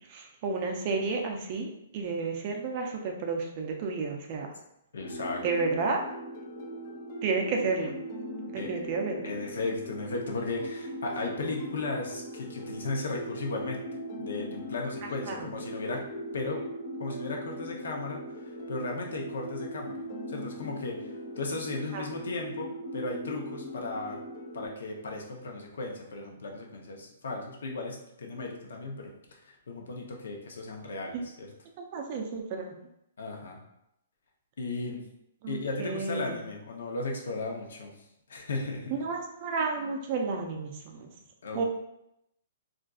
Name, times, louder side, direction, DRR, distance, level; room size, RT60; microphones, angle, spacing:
voice 1, 0.1-4.5 5.4-6.0 7.2-8.0 8.5-9.2 15.3-15.5 21.9-22.0 31.1-31.2 31.9-32.7 35.4-36.3 38.9-41.1 41.5-41.6, right 4 dB, 30° right, 2 dB, 0.4 m, -31 dB
voice 2, 4.9-5.4 8.5-8.7 9.2-13.8 14.2-16.0 16.3-16.6 17.0-18.2 18.4-20.0 20.3-24.2 24.5-31.5 33.2-33.6 34.6-35.0 35.5-37.9 38.3-39.0 41.4-41.6, left 3 dB, 80° left, 1 dB, 0.7 m, -36 dB
sound 1, 5.0-24.7, equal, 35° left, 0.4 m, -40 dB
3.6 x 2.4 x 2.3 m, 0.80 s
hypercardioid pair, 170°, 0 cm